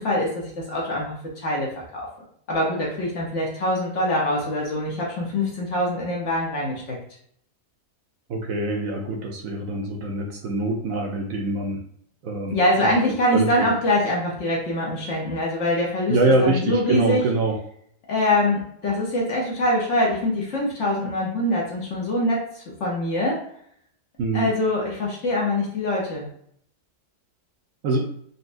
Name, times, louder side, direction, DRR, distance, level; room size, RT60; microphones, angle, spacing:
voice 1, 0.0-2.1 2.5-7.0 12.5-16.2 16.4-17.2 18.1-23.4 24.3-26.3, left 1 dB, 55° left, -3 dB, 1.0 m, -24 dB
voice 2, 8.3-11.8 12.2-12.9 13.3-13.7 16.1-17.6 24.2-24.5 27.8-28.1, right 2 dB, 70° right, 1 dB, 0.9 m, -24 dB
4.0 x 2.2 x 2.5 m, 0.65 s
omnidirectional pair, 1.6 m